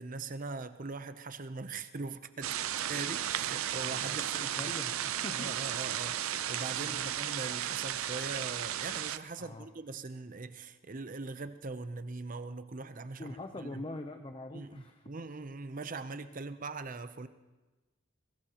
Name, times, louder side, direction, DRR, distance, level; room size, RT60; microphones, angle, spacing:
voice 1, 0.0-2.6 2.9-4.7 5.3-13.4 13.6-13.8 14.5-17.3, right 3 dB, 40° right, 11 dB, 0.6 m, -41 dB
sound 1, 2.4-9.2, right 11 dB, 90° right, 0.5 m, -34 dB
voice 2, 3.8-5.6 6.7-7.1 9.4-9.7 13.2-15.0 16.3-16.4, left 2 dB, 25° left, 6 dB, 0.6 m, -44 dB
22.5 x 18.5 x 3.0 m, 1.2 s
head